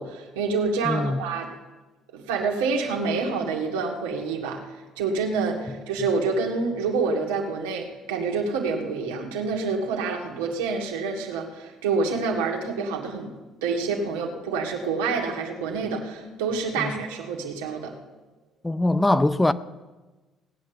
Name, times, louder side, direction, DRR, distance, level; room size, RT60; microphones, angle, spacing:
voice 1, 0.0-1.5 2.1-4.6 5.0-13.3 13.6-17.9, right 4 dB, 85° right, 2.1 m, -27 dB
voice 2, 0.8-1.2 16.8-17.0 18.6-19.5, left 1 dB, 15° left, 0.7 m, -22 dB
18.5 x 8.7 x 7.0 m
hypercardioid pair, 55°, 0 cm